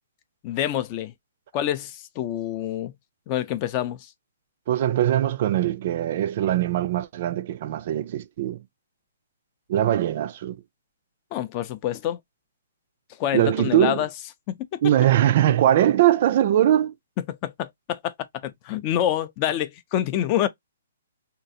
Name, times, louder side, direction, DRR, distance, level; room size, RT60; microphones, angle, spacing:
voice 1, 0.4-1.1 1.5-2.9 3.3-4.1 11.3-12.2 13.2-14.1 14.5-14.8 17.3-18.1 18.4-20.5, left 11 dB, 30° left, 0.4 m, -27 dB
voice 2, 4.7-8.6 9.7-10.6 13.3-14.1 14.8-16.9, right 12 dB, 45° right, 0.4 m, -21 dB
3.6 x 2.4 x 2.6 m
hypercardioid pair, 150°, 0 cm